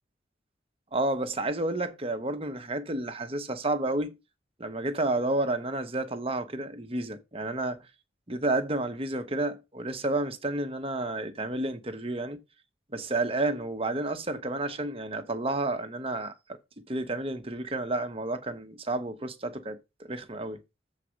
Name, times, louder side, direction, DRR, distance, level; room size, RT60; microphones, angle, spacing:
voice 1, 0.9-4.2 4.6-7.8 8.3-12.4 12.9-16.6 16.9-20.6, right 2 dB, 30° right, 1.1 m, -31 dB
7.6 x 4.1 x 6.4 m
head